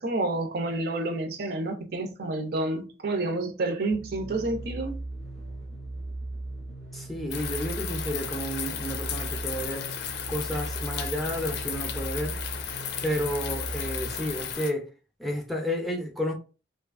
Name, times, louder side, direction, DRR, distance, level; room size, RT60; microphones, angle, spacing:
voice 1, 0.0-5.0, right 2 dB, 55° right, 0.5 m, -29 dB
sound 1, 3.9-14.6, right 2 dB, 85° right, 0.9 m, -38 dB
voice 2, 6.9-9.9 10.3-12.4 13.0-14.9 15.2-16.3, equal, ahead, 0.4 m, -31 dB
sound 2, 7.3-14.7, left 8 dB, 60° left, 0.4 m, -35 dB
2.6 x 2.3 x 2.4 m
head